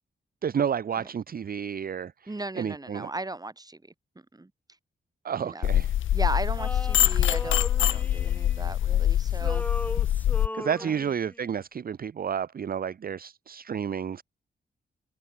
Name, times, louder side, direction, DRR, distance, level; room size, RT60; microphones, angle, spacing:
voice 1, 0.4-2.3 2.6-3.1 5.2-5.9 10.5-14.2, right 7 dB, 50° right, 0.6 m, -31 dB
voice 2, 2.3-3.9 4.3-4.5 5.4-5.7 6.1-9.6 10.8-11.0, right 2 dB, 20° right, 2.9 m, -37 dB
sound 1, 5.6-10.5, left 11 dB, 80° left, 0.6 m, -24 dB
Male singing, 6.6-9.0 9.3-11.5, left 1 dB, 10° left, 4.2 m, -38 dB
open air
cardioid pair, 85°, 20 cm